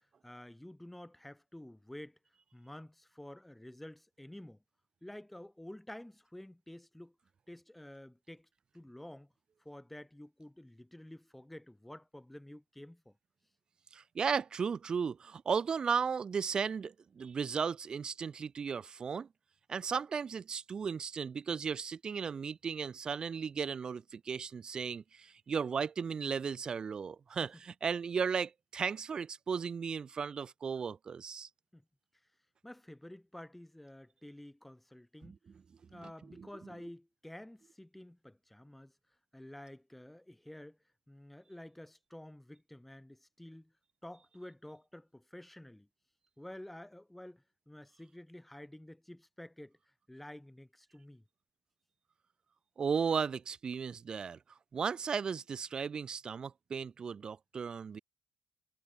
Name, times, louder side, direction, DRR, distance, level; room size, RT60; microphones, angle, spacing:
voice 1, 0.2-2.2 2.5-4.6 5.0-7.1 7.5-8.5 8.7-9.3 9.6-13.2 27.5-27.6 31.7-31.8 32.6-35.4 35.9-38.9 39.3-40.8 41.1-43.7 44.0-45.9 46.4-49.8 50.1-51.2, left 1 dB, 5° left, 3.2 m, -50 dB
voice 2, 13.9-19.3 19.7-31.5 35.9-36.1 36.4-36.5 52.8-54.4 54.7-58.0, right 6 dB, 40° right, 0.6 m, -35 dB
cardioid pair, 90°, 2 cm